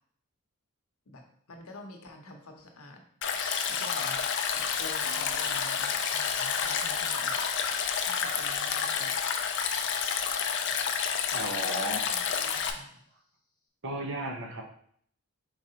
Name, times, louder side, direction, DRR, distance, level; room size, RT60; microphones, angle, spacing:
voice 1, 1.1-4.3 4.5-7.4 7.7-9.2 10.4-10.8 11.9-13.0, left 1 dB, 75° left, 3 dB, 0.8 m, -49 dB
Stream, 3.2-12.7, left 7 dB, 55° left, 0.4 m, -30 dB
sound 1, 3.4-12.4, left 2 dB, 15° left, 0.8 m, -47 dB
voice 2, 11.3-12.1 12.4-12.8 13.8-14.6, right 1 dB, 60° right, 2 dB, 0.8 m, -35 dB
4.7 x 3.9 x 2.8 m, 0.62 s
head